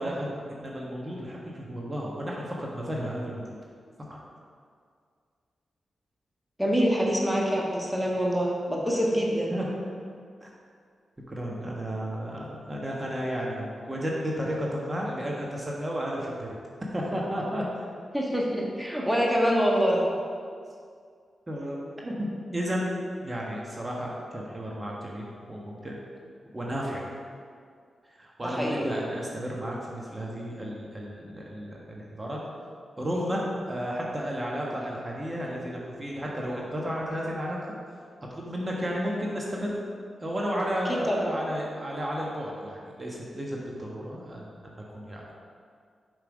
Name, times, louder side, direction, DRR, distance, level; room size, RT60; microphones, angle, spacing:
voice 1, 0.0-3.6 4.1-4.2 9.5-9.7 10.4-10.5 11.3-16.5 16.9-17.9 21.5-21.8 22.0-22.9 23.2-26.0 26.5-27.1 28.2-32.4 33.0-37.6 38.4-39.8 40.2-45.2, equal, 30° right, -3 dB, 1.4 m, -33 dB
voice 2, 6.6-9.5 18.1-20.1 28.4-28.9 40.9-41.3, equal, ahead, -3 dB, 1.5 m, -25 dB
5.8 x 5.5 x 5.2 m, 2.2 s
supercardioid pair, 45°, 0 cm